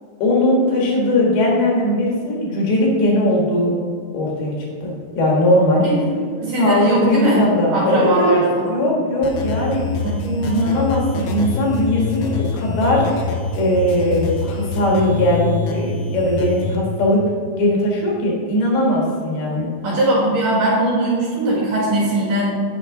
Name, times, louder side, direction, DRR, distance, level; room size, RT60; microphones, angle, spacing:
voice 1, 0.2-3.8 4.1-4.5 4.8-5.8 6.6-9.8 10.4-13.1 13.5-17.2 17.6-19.7, left 1 dB, 65° left, -3 dB, 3.2 m, -19 dB
voice 2, 6.3-7.4 7.7-8.7 10.0-10.7 19.8-22.5, right 1 dB, 55° right, -5 dB, 2.9 m, -20 dB
sound 1, 9.2-16.8, left 4 dB, 85° left, 3.3 m, -25 dB
9.2 x 8.0 x 3.8 m, 2.2 s
omnidirectional pair, 5.2 m